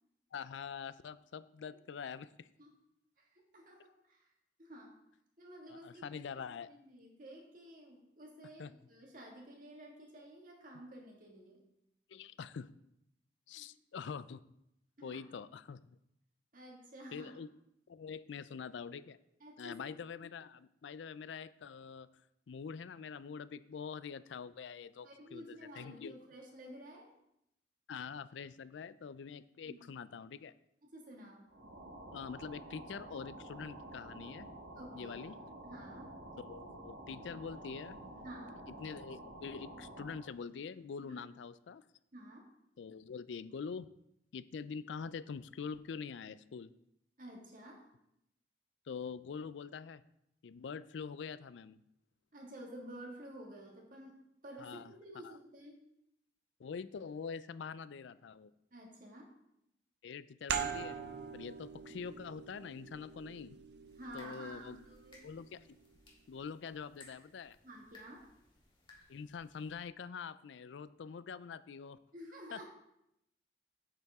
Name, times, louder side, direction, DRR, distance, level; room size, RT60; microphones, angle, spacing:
voice 1, 0.3-2.5 5.7-6.7 8.6-8.7 12.1-12.7 13.5-14.4 15.0-15.8 17.1-17.5 17.9-19.2 19.6-22.1 22.5-26.2 27.9-30.5 32.1-34.5 34.9-35.3 36.4-38.0 38.7-41.9 42.8-43.9 44.3-46.7 48.9-50.0 50.4-51.8 54.6-54.9 55.2-55.4 56.6-58.5 60.0-61.0 61.3-63.6 64.1-64.8 65.2-65.8 66.3-67.6 69.1-72.0 72.5-72.6, left 6 dB, 75° left, 16 dB, 0.4 m, -45 dB
voice 2, 3.2-4.2 4.6-4.9 5.4-6.2 6.5-11.6 13.5-13.7 15.0-15.2 16.5-17.3 19.4-19.9 25.0-27.1 29.6-29.8 30.8-31.5 34.8-35.2 35.6-36.1 38.2-38.6 41.0-41.2 42.1-42.5 47.2-47.8 52.3-55.8 58.7-59.3 64.0-65.3 67.6-68.3 72.1-72.6, right 1 dB, 45° right, 0 dB, 2.0 m, -51 dB
sound 1, 31.5-40.3, right 1 dB, 80° right, 1.4 m, -50 dB
sound 2, 60.5-65.8, right 7 dB, 65° right, 0.6 m, -43 dB
sound 3, 63.9-69.8, left 2 dB, 25° left, 1.8 m, -62 dB
8.8 x 8.2 x 3.6 m, 0.80 s
head